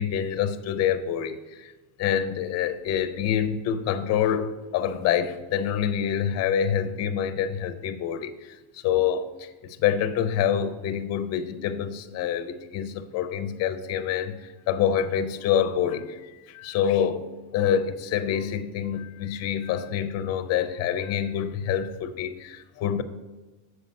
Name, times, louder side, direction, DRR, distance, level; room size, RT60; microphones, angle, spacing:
voice 1, 0.0-1.7 2.0-23.0, left 9 dB, 35° left, 9 dB, 0.5 m, -26 dB
8.1 x 5.4 x 5.3 m, 1.2 s
cardioid pair, 160°, 46 cm